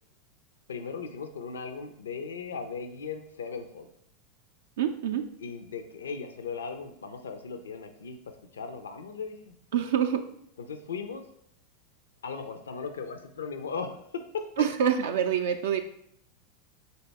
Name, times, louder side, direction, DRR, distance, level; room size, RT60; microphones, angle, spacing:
voice 1, 0.7-3.9 5.4-8.2 8.5-9.6 10.7-11.2 12.2-14.4, left 5 dB, 75° left, 7 dB, 0.4 m, -37 dB
voice 2, 4.8-5.2 9.7-10.2 14.6-15.8, right 9 dB, 65° right, 6 dB, 0.3 m, -26 dB
4.1 x 3.9 x 3.4 m, 0.71 s
figure-of-eight pair, 85°, 0 cm